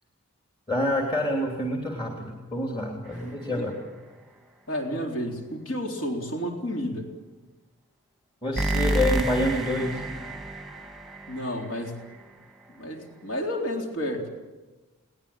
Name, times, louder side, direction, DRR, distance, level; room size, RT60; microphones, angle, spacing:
voice 1, 0.7-3.7 8.4-10.0, left 1 dB, 25° left, 0 dB, 3.2 m, -27 dB
sound 1, 3.1-3.8 8.6-12.2, right 1 dB, ahead, 1.5 m, -30 dB
voice 2, 4.7-7.1 8.8-9.0 11.3-12.0 12.7-14.3, equal, 60° left, 1 dB, 3.9 m, -31 dB
21.5 x 19.5 x 8.8 m, 1.2 s
head